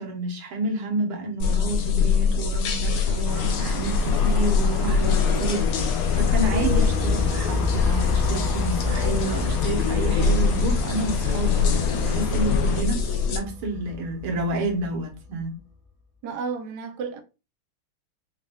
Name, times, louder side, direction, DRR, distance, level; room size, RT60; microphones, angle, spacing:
voice 1, 0.0-5.7 6.1-15.5, right 2 dB, 80° right, 2.0 m, -29 dB
sound 1, 1.4-13.4, left 5 dB, 65° left, 0.9 m, -24 dB
sound 2, 3.3-12.8, left 5 dB, 85° left, 1.7 m, -31 dB
sound 3, 5.5-15.4, left 3 dB, 25° left, 0.9 m, -30 dB
voice 2, 16.2-17.2, right 5 dB, 65° right, 1.1 m, -32 dB
5.0 x 2.5 x 3.4 m
omnidirectional pair, 2.3 m